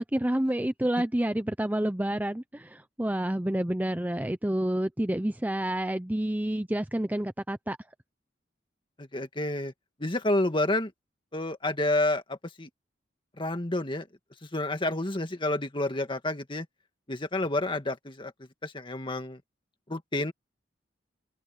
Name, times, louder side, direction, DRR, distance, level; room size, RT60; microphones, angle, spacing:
voice 1, 0.0-7.8, right 1 dB, 10° right, 0.6 m, -29 dB
voice 2, 9.0-9.7 10.0-10.9 11.3-12.7 13.4-14.1 14.5-16.7 17.1-18.3 18.6-19.4 19.9-20.3, left 1 dB, 25° left, 2.0 m, -29 dB
open air
head